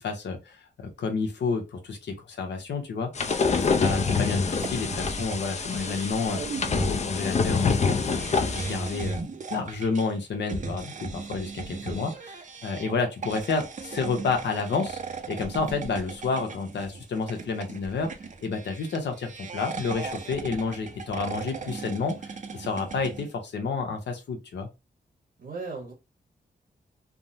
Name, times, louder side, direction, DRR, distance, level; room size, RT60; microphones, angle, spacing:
voice 1, 0.0-6.4 6.8-12.1 12.6-15.0 15.3-18.1 18.4-24.7, left 4 dB, 85° left, 0.8 m, -30 dB
sound 1, 3.1-9.1, left 4 dB, 40° left, 0.5 m, -26 dB
voice 2, 3.7-4.0 5.0-5.1 11.7-12.0 25.4-25.9, right 4 dB, 70° right, 1.1 m, -38 dB
sound 2, 4.0-23.3, right 4 dB, 45° right, 0.5 m, -38 dB
3.5 x 2.1 x 2.6 m
cardioid pair, 75°, 18 cm